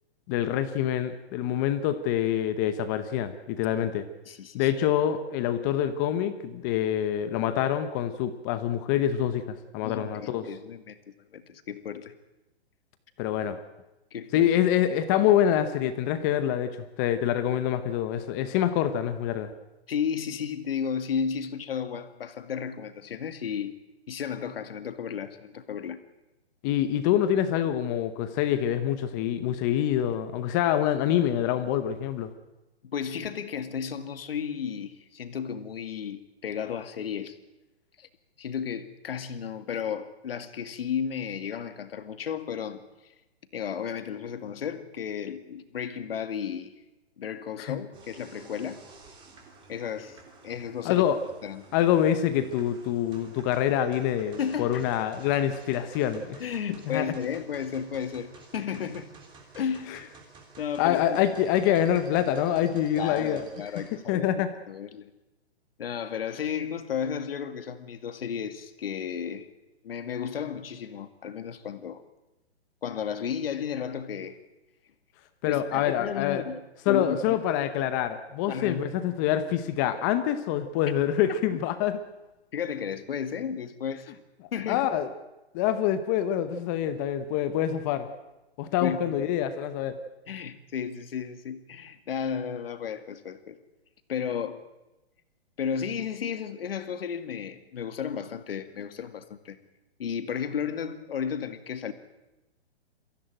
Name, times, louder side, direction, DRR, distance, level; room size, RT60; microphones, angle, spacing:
voice 1, 0.3-4.1 4.5-10.4 13.2-13.6 14.3-19.5 26.6-32.3 47.6-47.8 50.8-51.2 51.7-56.4 56.9-57.1 59.9-60.0 60.8-63.4 64.1-64.5 75.4-76.4 76.9-82.0 84.7-85.1 85.5-88.1 88.6-90.0, left 10 dB, 20° left, 12 dB, 0.8 m, -26 dB
voice 2, 4.3-4.7 9.8-11.0 11.3-12.1 14.1-14.5 19.9-26.0 32.8-37.4 38.0-38.1 38.4-42.9 43.5-46.7 47.2-48.8 49.7-50.2 50.4-51.0 51.4-51.6 54.4-54.8 56.4-59.1 59.5-60.0 60.6-61.2 63.0-64.3 64.7-65.1 65.8-69.5 69.8-72.0 72.8-74.4 75.4-77.4 78.5-78.9 82.5-84.2 84.5-84.9 88.6-89.2 90.3-93.6 94.1-94.6 95.6-99.6 100.0-101.9, left 7 dB, 60° left, 10 dB, 2.2 m, -33 dB
sound 1, 47.9-63.9, right 3 dB, 15° right, 3.3 m, -52 dB
23.5 x 15.5 x 9.0 m, 0.99 s
hypercardioid pair, 155°, 33 cm